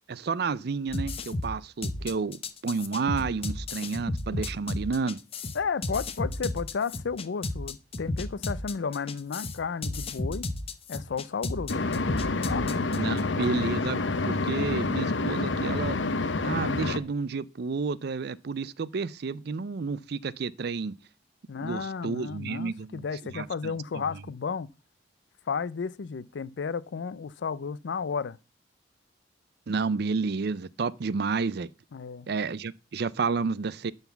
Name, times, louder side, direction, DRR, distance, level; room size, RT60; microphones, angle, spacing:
voice 1, 0.1-2.4 2.6-5.2 13.0-16.0 16.4-20.9 21.6-23.0 23.3-24.0 29.7-31.7 32.3-33.9, right 4 dB, 60° right, 0.5 m, -30 dB
sound 1, 0.9-13.2, left 2 dB, 30° left, 0.8 m, -33 dB
voice 2, 5.5-10.5 10.9-11.7 12.5-12.7 21.5-24.7 25.5-28.4 31.9-32.3, left 5 dB, 70° left, 0.4 m, -33 dB
sound 2, 11.7-17.0, left 3 dB, 85° left, 0.9 m, -28 dB
11.5 x 4.0 x 6.9 m
head